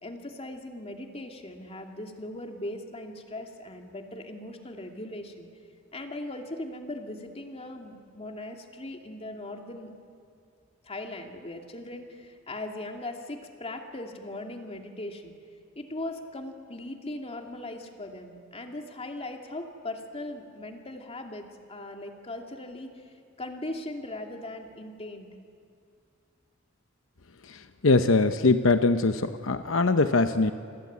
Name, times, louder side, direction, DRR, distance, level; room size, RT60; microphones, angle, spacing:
voice 1, 0.0-5.5 5.9-9.9 10.8-15.3 15.8-25.3, left 1 dB, 30° left, 3 dB, 2.6 m, -39 dB
voice 2, 27.8-30.5, left 3 dB, 80° left, 9 dB, 0.9 m, -22 dB
28.5 x 21.0 x 9.5 m, 2.3 s
head